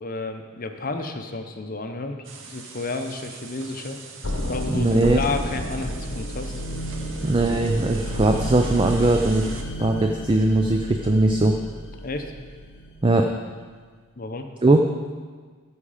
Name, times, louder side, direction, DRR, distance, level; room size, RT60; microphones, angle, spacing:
voice 1, 0.0-4.0 4.5-6.6 12.0-12.3 14.2-14.5, left 3 dB, 40° left, 6 dB, 0.7 m, -31 dB
sound 1, 2.2-9.6, right 5 dB, 60° right, 0.9 m, -43 dB
sound 2, 4.2-13.1, equal, 65° left, 0.9 m, -31 dB
voice 2, 4.7-5.2 7.2-9.5 9.8-11.6 13.0-13.3 14.6-14.8, right 2 dB, 25° right, 3 dB, 0.4 m, -20 dB
14.0 x 4.9 x 4.9 m, 1.5 s
head